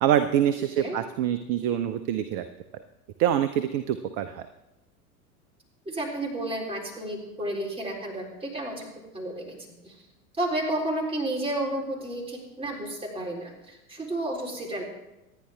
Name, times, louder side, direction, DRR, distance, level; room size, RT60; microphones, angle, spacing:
voice 1, 0.0-2.5 3.2-4.5, right 10 dB, 40° right, 11 dB, 0.8 m, -25 dB
voice 2, 5.9-9.6 9.8-10.0 10.3-14.8, right 1 dB, 10° right, -1 dB, 3.8 m, -31 dB
25.5 x 9.9 x 3.6 m, 0.97 s
figure-of-eight pair, 85°, 44 cm